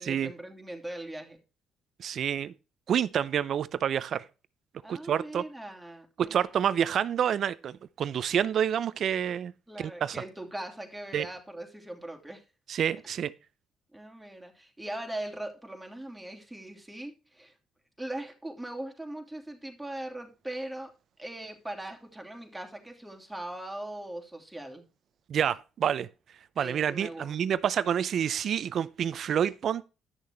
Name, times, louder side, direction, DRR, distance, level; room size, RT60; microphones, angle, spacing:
voice 1, 0.0-1.4 4.8-6.6 9.7-12.4 13.9-17.5 18.0-20.9 21.2-24.8 26.5-27.4, right 1 dB, 5° right, 3.0 m, -40 dB
voice 2, 2.0-2.5 2.9-4.2 4.9-5.4 6.2-9.5 9.8-10.2 11.1-11.3 12.7-13.3 25.3-26.1 26.6-29.8, right 9 dB, 60° right, 0.6 m, -28 dB
10.5 x 6.6 x 4.4 m
supercardioid pair, 65°, 0 cm